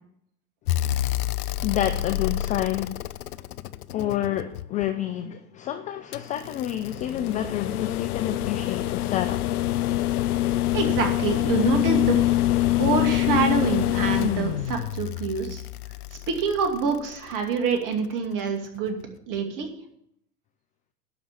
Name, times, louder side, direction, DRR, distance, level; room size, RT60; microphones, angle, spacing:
sound 1, 0.7-4.8 6.1-17.3 18.9-19.0, left 14 dB, 75° left, 0.6 m, -26 dB
voice 1, 1.6-3.0 3.9-9.4, left 12 dB, 20° left, 8 dB, 0.3 m, -28 dB
voice 2, 10.7-12.5 12.8-15.6 16.3-19.0 19.3-19.7, right 5 dB, 40° right, 4 dB, 2.5 m, -26 dB
11.5 x 5.2 x 7.4 m, 0.73 s
figure-of-eight pair, 85°, 46 cm